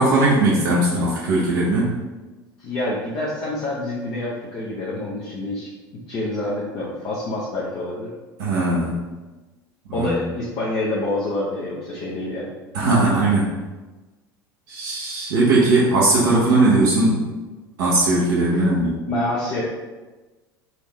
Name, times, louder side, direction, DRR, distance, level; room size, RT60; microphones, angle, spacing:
voice 1, 0.0-1.9 8.4-9.0 9.9-10.1 12.7-13.5 14.7-17.3 17.8-19.0, right 2 dB, 60° right, -6 dB, 0.8 m, -19 dB
voice 2, 2.6-5.7 6.1-8.1 9.9-12.5 18.5-18.6 19.1-19.6, left 2 dB, 40° left, -7 dB, 0.8 m, -27 dB
4.2 x 2.6 x 3.2 m, 1.2 s
figure-of-eight pair, 70°, 12 cm